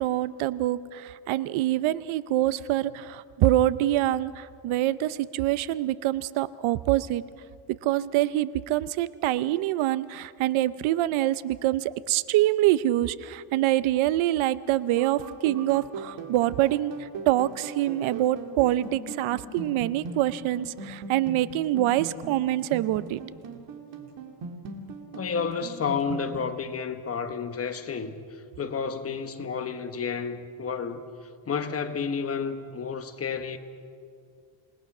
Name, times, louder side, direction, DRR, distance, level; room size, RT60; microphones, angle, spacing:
voice 1, 0.0-7.2 7.8-23.2, right 14 dB, 80° right, 17 dB, 0.7 m, -25 dB
sound 1, 15.0-26.4, right 4 dB, 65° right, 2.3 m, -39 dB
voice 2, 25.1-31.0 31.5-33.6, left 6 dB, 30° left, 8 dB, 1.2 m, -31 dB
27.5 x 19.5 x 6.1 m, 2.3 s
cardioid pair, 145°, 47 cm